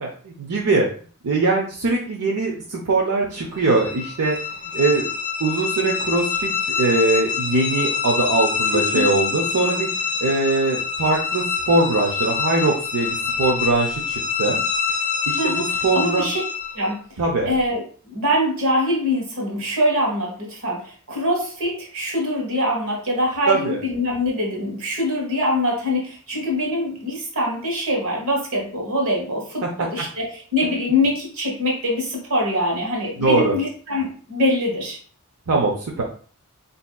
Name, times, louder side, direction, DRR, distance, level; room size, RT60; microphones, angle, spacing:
voice 1, 0.0-0.9 1.2-4.4 4.7-5.1 5.4-6.5 6.8-9.9 10.2-14.6 15.3-16.3 17.2-17.5 23.5-23.8 30.0-30.1 33.2-33.6 35.5-36.0, right 3 dB, 90° right, -2 dB, 0.6 m, -21 dB
sound 1, 3.6-16.9, left 6 dB, 15° left, 0.6 m, -26 dB
voice 2, 8.7-9.1 15.4-15.7 15.9-16.4 16.7-17.0 17.5-35.0, left 1 dB, 70° right, -1 dB, 1.3 m, -23 dB
4.4 x 2.7 x 2.3 m, 0.43 s
head